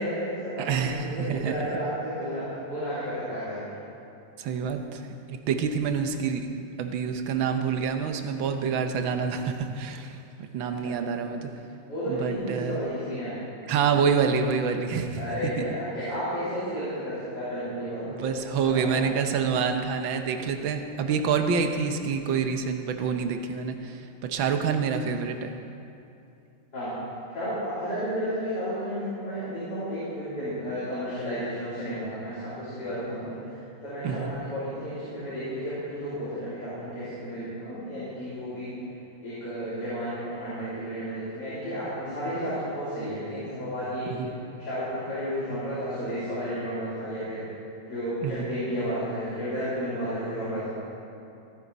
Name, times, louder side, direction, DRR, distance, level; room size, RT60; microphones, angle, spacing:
voice 1, 0.0-3.6 10.8-10.9 11.9-13.3 15.2-19.0 26.7-26.9 27.3-38.7 39.2-44.3 44.6-47.4 47.9-50.7, equal, 55° left, -13 dB, 4.1 m, -32 dB
voice 2, 0.6-1.7 4.4-6.5 6.8-10.2 10.5-11.5 12.1-12.8 13.7-15.6 18.1-25.5 34.0-34.4 44.1-44.3 48.2-48.5, right 6 dB, 90° right, 6 dB, 1.6 m, -27 dB
16.5 x 10.0 x 4.1 m, 2.7 s
omnidirectional pair, 2.1 m